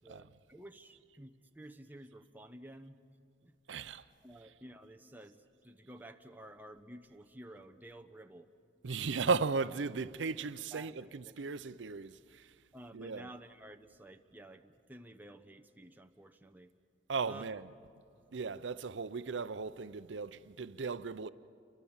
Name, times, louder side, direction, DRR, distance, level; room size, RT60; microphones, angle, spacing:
voice 1, 0.0-3.0 3.4-3.5 4.2-8.5 10.7-11.3 12.7-16.7 17.2-17.4, right 1 dB, 10° right, 0.9 m, -52 dB
voice 2, 3.7-4.1 8.8-12.5 12.9-13.3 17.1-17.7 18.3-21.3, right 4 dB, 80° right, 0.6 m, -36 dB
29.0 x 24.0 x 7.3 m
head